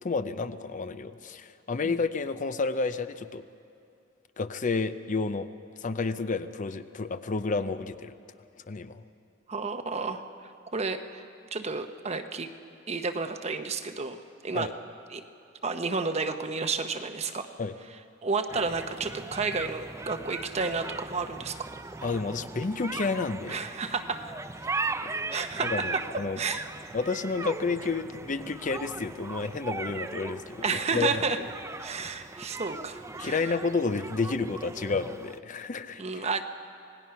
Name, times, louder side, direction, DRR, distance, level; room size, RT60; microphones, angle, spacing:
voice 1, 0.0-3.4 4.4-5.5 5.8-8.1 8.7-9.0 14.5-14.7 17.6-17.7 22.0-23.6 25.0-25.2 25.6-26.4 26.9-31.2 33.2-36.3, left 4 dB, 40° left, 11 dB, 0.6 m, -30 dB
voice 2, 9.5-11.2 11.5-12.5 12.9-14.7 15.1-15.2 15.6-17.5 18.2-21.6 23.5-24.2 25.3-26.0 26.4-26.7 30.6-31.4 31.8-33.6 36.0-36.4, right 4 dB, 35° right, 8 dB, 0.9 m, -31 dB
sound 1, 18.5-35.4, right 3 dB, 15° right, 0.4 m, -38 dB
26.5 x 18.0 x 5.7 m, 2.6 s
head